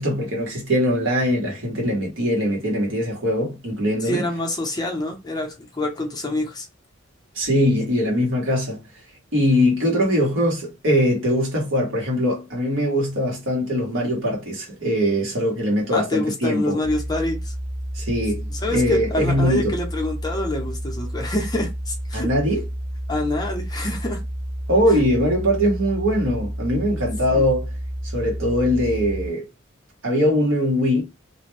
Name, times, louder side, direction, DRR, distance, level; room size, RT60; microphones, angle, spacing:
voice 1, 0.0-4.2 7.3-8.8 9.3-16.8 17.9-19.7 22.1-22.6 24.7-27.7 28.1-29.5 30.0-31.0, equal, 70° right, 1.2 m, -21 dB
voice 2, 4.0-6.7 15.9-17.5 18.5-22.3 23.1-24.2 24.9-25.0 27.4-27.5, left 1 dB, 20° left, 0.7 m, -26 dB
sound 1, 16.8-29.3, equal, 15° right, 0.4 m, -30 dB
2.5 x 2.2 x 3.2 m
head